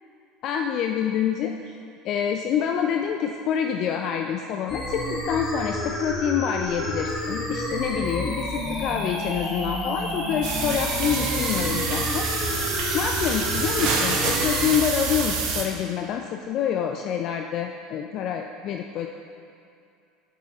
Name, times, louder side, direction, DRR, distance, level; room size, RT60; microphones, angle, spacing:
voice 1, 0.4-1.8 2.0-12.3 12.6-19.1, left 8 dB, 50° left, 4 dB, 0.3 m, -27 dB
sound 1, 4.7-14.7, left 1 dB, 25° left, 1.4 m, -30 dB
sound 2, 10.4-15.6, right 4 dB, 55° right, 0.9 m, -27 dB
8.0 x 5.5 x 3.9 m, 2.4 s
hypercardioid pair, 70°, 0 cm